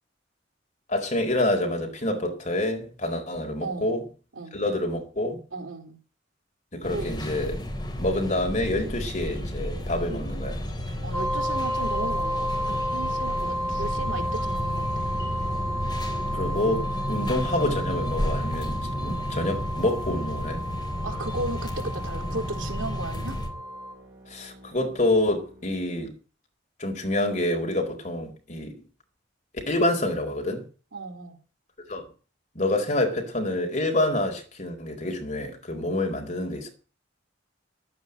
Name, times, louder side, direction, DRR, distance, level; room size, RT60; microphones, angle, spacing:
voice 1, 0.9-4.0 4.5-5.4 6.7-7.6 8.0-10.6 16.3-20.6 24.3-26.1 26.8-28.7 29.5-30.6 31.9-32.0 32.5-36.7, left 1 dB, 40° left, 4.5 m, -27 dB
voice 2, 3.6-4.0 4.4-4.6 5.5-6.0 6.9-7.1 11.0-15.1 17.2-17.4 21.0-23.4 30.9-31.4, right 2 dB, 80° right, 3.8 m, -35 dB
sound 1, 6.8-23.5, equal, 25° left, 3.2 m, -32 dB
sound 2, 7.5-26.1, right 1 dB, 30° right, 7.9 m, -50 dB
sound 3, 11.1-23.9, equal, 10° left, 4.4 m, -32 dB
12.0 x 9.5 x 8.1 m
head